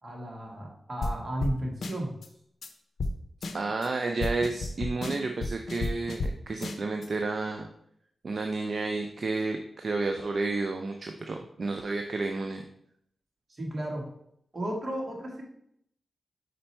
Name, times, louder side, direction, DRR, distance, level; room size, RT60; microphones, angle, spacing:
voice 1, 0.0-2.1 13.5-14.1 14.5-15.4, right 1 dB, 40° right, -1 dB, 1.8 m, -34 dB
sound 1, 1.0-1.1 1.4-1.5 1.8-2.3 2.6-2.7 3.0-3.1 3.4-3.9 4.2-6.3 6.6-7.1, left 2 dB, 80° left, 0.6 m, -32 dB
voice 2, 3.5-7.7 8.2-12.6, right 3 dB, 55° right, 4 dB, 0.5 m, -31 dB
5.1 x 4.4 x 4.4 m, 0.72 s
cardioid pair, 75°, 0 cm